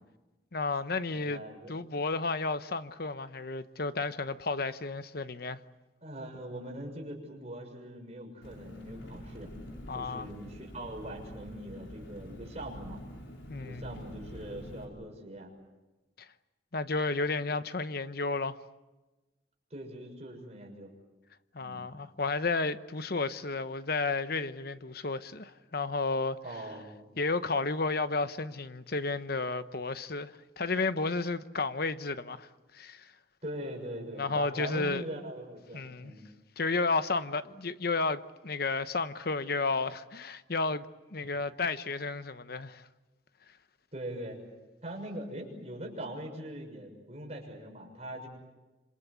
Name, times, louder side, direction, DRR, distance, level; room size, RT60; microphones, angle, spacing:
voice 1, 0.5-5.6 9.9-10.3 13.5-13.9 16.7-18.6 21.5-26.4 27.2-32.5 32.7-33.1 34.2-35.0 35.7-36.1 36.6-40.9 41.1-42.9, left 3 dB, 55° left, 1.0 m, -32 dB
voice 2, 1.1-1.8 6.0-9.5 9.9-13.0 13.6-15.5 19.7-20.9 21.6-21.9 26.4-27.0 33.4-36.3 41.2-41.3 43.9-44.4 44.8-48.3, right 1 dB, 35° right, 6.4 m, -42 dB
Engine, 8.4-14.9, equal, 85° left, 5.3 m, -46 dB
26.5 x 26.0 x 8.3 m
head